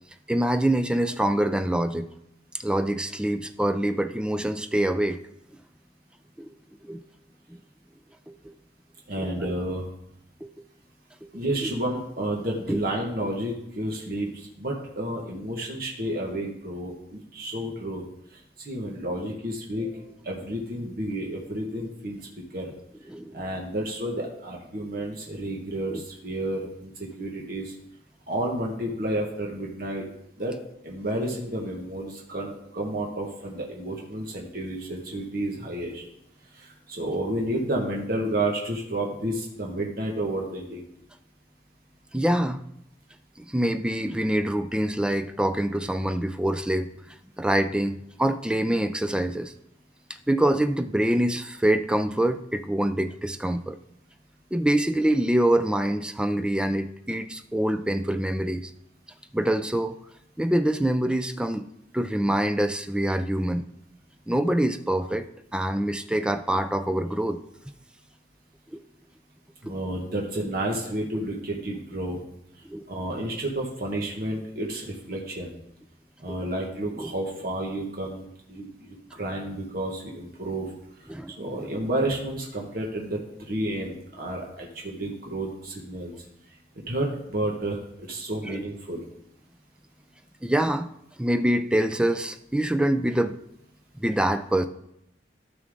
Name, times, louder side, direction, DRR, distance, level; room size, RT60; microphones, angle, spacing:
voice 1, 0.3-2.1 2.5-5.2 6.4-6.5 6.8-7.0 7.5-7.6 8.3-8.5 9.2-9.5 10.4-10.5 11.2-11.3 11.6-11.7 12.7-12.8 23.1-23.4 25.9-26.0 42.1-42.6 43.4-49.5 50.3-53.8 54.5-58.7 59.3-60.0 60.4-61.7 61.9-63.6 64.3-65.3 65.5-67.4 68.7-68.8 69.6-69.7 72.6-72.9 76.3-76.4 76.9-77.1 81.1-81.7 88.4-88.6 90.4-90.9 91.2-93.4 94.0-94.7, right 1 dB, 5° right, 9 dB, 0.4 m, -25 dB
voice 2, 9.1-9.9 11.3-18.0 18.6-22.2 22.5-22.6 23.3-27.7 28.3-30.0 30.4-30.5 30.8-36.0 36.6-40.8 69.6-72.2 72.9-75.5 76.2-80.7 81.4-86.1 86.9-87.8 88.1-89.0, right 1 dB, 55° right, -1 dB, 1.6 m, -31 dB
13.0 x 6.1 x 3.8 m, 0.78 s
head